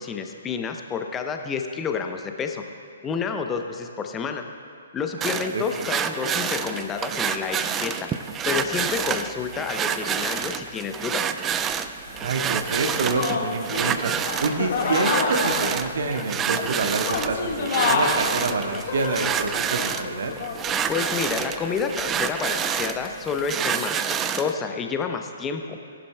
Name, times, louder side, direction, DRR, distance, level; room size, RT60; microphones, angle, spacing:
voice 1, 0.0-2.6 3.0-4.4 4.9-8.1 8.4-11.3 20.9-25.8, left 6 dB, 15° left, 5 dB, 0.8 m, -29 dB
sound 1, 5.2-24.5, right 8 dB, 15° right, 0.4 m, -28 dB
sound 2, 11.5-11.6 12.3-12.4 13.0-22.8, left 4 dB, 45° left, 1.6 m, -29 dB
voice 2, 12.1-14.1 14.4-20.3, right 3 dB, 55° right, 5 dB, 1.1 m, -27 dB
18.5 x 11.0 x 2.2 m, 2.3 s
figure-of-eight pair, 125°, 0 cm